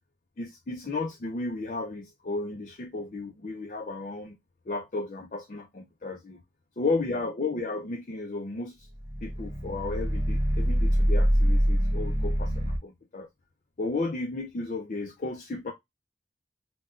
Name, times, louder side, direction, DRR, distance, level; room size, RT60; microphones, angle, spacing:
voice 1, 0.4-4.4 4.7-6.4 6.8-8.9 9.2-13.3 13.8-15.7, left 3 dB, 45° left, 0.5 m, -33 dB
sound 1, 8.9-12.8, equal, 20° right, 0.8 m, -25 dB
5.5 x 2.2 x 2.4 m
head